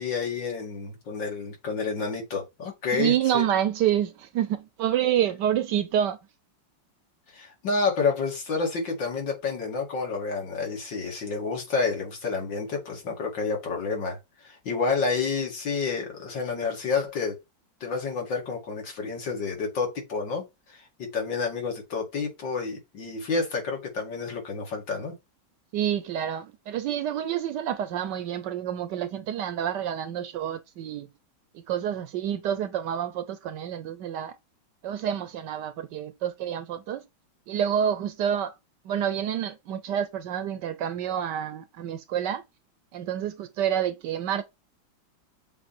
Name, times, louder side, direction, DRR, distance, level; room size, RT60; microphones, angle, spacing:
voice 1, 0.0-3.4 7.3-17.4 17.8-20.4 20.7-25.1, left 4 dB, 70° left, 2.9 m, -29 dB
voice 2, 2.9-6.2 25.7-31.1 31.5-34.4 34.8-37.0 37.5-38.5 38.8-42.4 42.9-44.4, right 10 dB, 70° right, 1.2 m, -28 dB
7.1 x 3.2 x 4.3 m
omnidirectional pair, 2.1 m